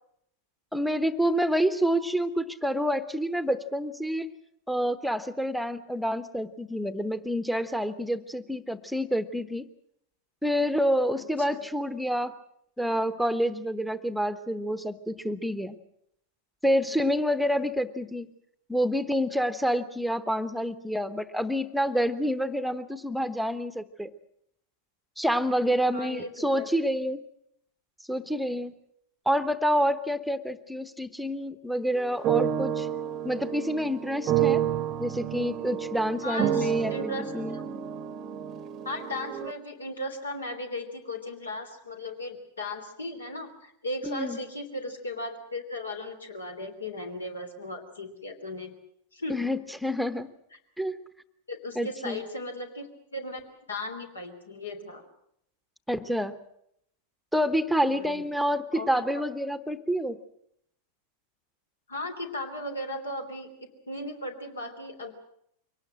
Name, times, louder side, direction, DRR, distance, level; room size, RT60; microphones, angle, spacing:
voice 1, 0.7-4.3 4.7-9.7 10.4-12.3 12.8-15.8 16.6-18.3 18.7-24.1 25.2-27.2 28.1-28.7 29.3-32.9 33.2-34.6 35.0-37.6 44.0-44.4 49.3-50.3 50.8-51.0 51.8-52.2 55.9-56.4 57.3-60.2, equal, ahead, 12 dB, 1.0 m, -28 dB
voice 2, 25.9-26.7 36.2-37.6 38.8-48.7 49.1-49.5 51.5-53.4 53.7-55.0 57.9-58.2 58.7-59.0 61.9-63.5 63.9-65.1, left 1 dB, 75° left, 5 dB, 3.2 m, -36 dB
sound 1, 31.9-39.5, right 10 dB, 35° right, 0.9 m, -30 dB
23.5 x 18.5 x 7.6 m, 0.73 s
figure-of-eight pair, 90°, 0 cm